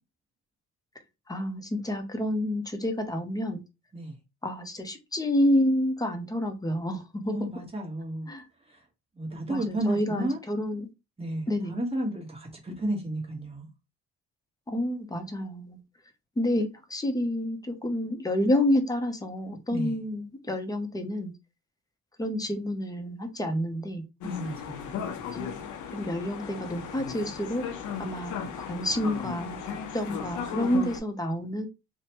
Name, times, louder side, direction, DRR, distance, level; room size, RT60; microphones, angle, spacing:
voice 1, 1.3-3.6 4.4-7.5 8.3-8.4 9.5-10.9 11.5-11.7 14.7-15.8 16.4-21.3 22.2-24.0 25.3-25.5 25.9-27.7 28.0-31.7, left 1 dB, 10° left, 0.6 m, -29 dB
voice 2, 7.2-8.3 9.2-10.4 11.2-13.7 19.7-20.0 24.2-24.8, right 1 dB, 20° right, 1.2 m, -32 dB
sound 1, 24.2-31.0, left 7 dB, 80° left, 0.6 m, -36 dB
3.0 x 2.1 x 2.9 m
cardioid pair, 90°, 30 cm